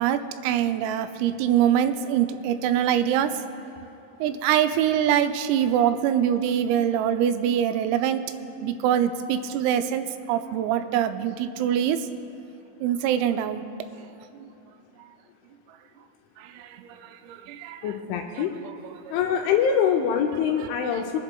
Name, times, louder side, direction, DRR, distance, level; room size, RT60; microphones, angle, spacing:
voice 1, 0.0-3.3 4.2-8.2 8.6-10.0 10.3-12.0 12.8-13.6 17.3-17.9 19.1-19.2, right 10 dB, 90° right, 9 dB, 3.2 m, -23 dB
voice 2, 17.8-18.5 19.1-21.2, left 7 dB, 85° left, 2 dB, 2.8 m, -24 dB
26.0 x 10.5 x 2.2 m, 2.9 s
omnidirectional pair, 5.9 m